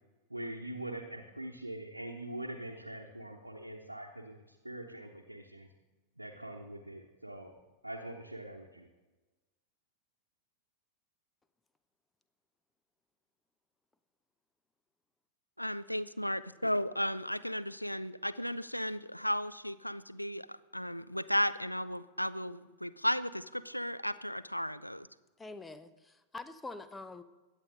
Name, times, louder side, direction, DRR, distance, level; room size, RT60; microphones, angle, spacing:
voice 1, 0.3-5.7 6.2-7.5 7.8-8.9, right 1 dB, 85° right, -1 dB, 1.0 m, -43 dB
voice 2, 15.6-25.1, equal, 90° left, 14 dB, 0.4 m, -34 dB
voice 3, 25.4-27.2, left 3 dB, 10° left, 12 dB, 0.7 m, -45 dB
21.5 x 8.4 x 3.8 m, 1.2 s
figure-of-eight pair, 90°, 0 cm